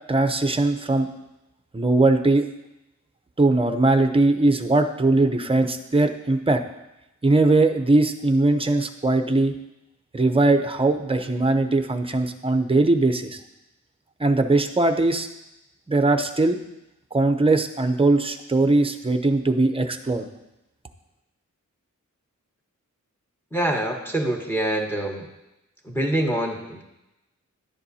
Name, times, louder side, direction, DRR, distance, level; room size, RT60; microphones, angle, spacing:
voice 1, 0.1-1.1 1.7-2.5 3.4-6.6 7.2-9.5 10.1-13.4 14.2-15.3 15.9-16.6 17.1-20.3, right 2 dB, 20° right, 7 dB, 0.6 m, -20 dB
voice 2, 23.5-25.3 25.8-26.8, right 1 dB, 5° left, 1 dB, 1.2 m, -25 dB
11.0 x 10.0 x 2.8 m, 0.93 s
wide cardioid pair, 155°, 31 cm